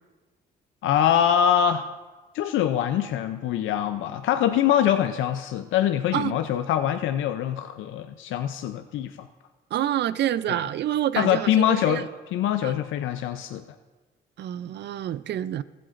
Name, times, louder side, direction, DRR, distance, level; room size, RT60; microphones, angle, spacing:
voice 1, 0.8-2.0 2.3-9.3 10.5-10.6 11.2-13.6, left 10 dB, 80° left, 9 dB, 0.5 m, -24 dB
voice 2, 9.7-12.0 12.6-12.7 14.4-15.6, right 11 dB, 60° right, 16 dB, 0.4 m, -27 dB
19.5 x 7.7 x 2.5 m, 1.3 s
cardioid pair, 90°, 20 cm